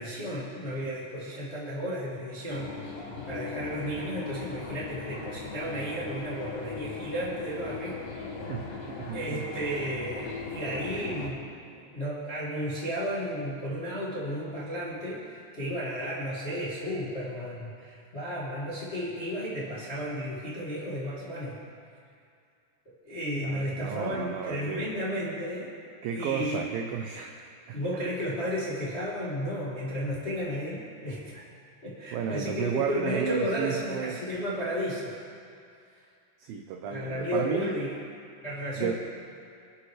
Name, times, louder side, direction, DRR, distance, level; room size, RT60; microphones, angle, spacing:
voice 1, 0.0-2.7 3.3-8.0 9.1-11.5 11.9-21.6 23.0-25.7 26.1-26.6 27.7-31.4 31.8-35.2 36.9-38.0 38.4-38.9, equal, 40° left, -8 dB, 0.9 m, -33 dB
sound 1, 2.5-11.3, left 4 dB, 75° left, 4.5 m, -39 dB
voice 2, 8.5-9.4 9.8-9.9 23.4-24.9 26.0-27.8 32.1-34.2 36.4-37.8 38.8-38.9, right 7 dB, 85° right, 3 dB, 2.0 m, -33 dB
26.0 x 8.7 x 3.2 m, 2.4 s
omnidirectional pair, 5.0 m